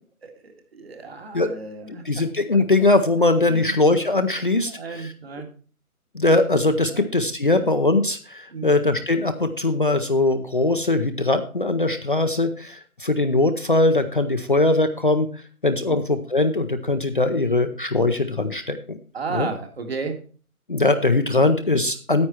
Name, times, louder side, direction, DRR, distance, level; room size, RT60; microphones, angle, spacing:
voice 1, 0.2-2.2 2.5-2.7 3.5-3.7 4.7-5.5 6.9-7.1 7.5-7.7 8.5-8.7 15.9-16.0 19.1-20.2, right 4 dB, 40° right, 5 dB, 1.9 m, -34 dB
voice 2, 1.9-5.1 6.1-15.3 15.6-19.0 19.3-19.5 20.7-22.3, left 2 dB, 35° left, 7 dB, 0.7 m, -21 dB
9.6 x 8.7 x 4.4 m, 0.39 s
hypercardioid pair, 170°, 45 cm